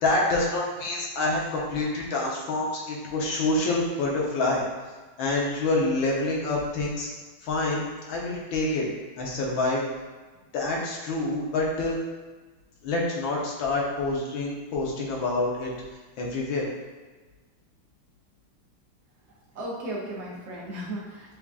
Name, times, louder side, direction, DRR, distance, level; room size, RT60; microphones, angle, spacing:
voice 1, 0.0-4.6 5.2-7.1 7.4-8.9 9.2-9.8 10.5-12.0 12.8-15.7 16.2-16.7, left 2 dB, 70° left, -3 dB, 1.6 m, -27 dB
voice 2, 19.3-21.4, right 1 dB, 85° right, -4 dB, 0.6 m, -36 dB
6.9 x 2.4 x 2.4 m, 1.3 s
omnidirectional pair, 2.3 m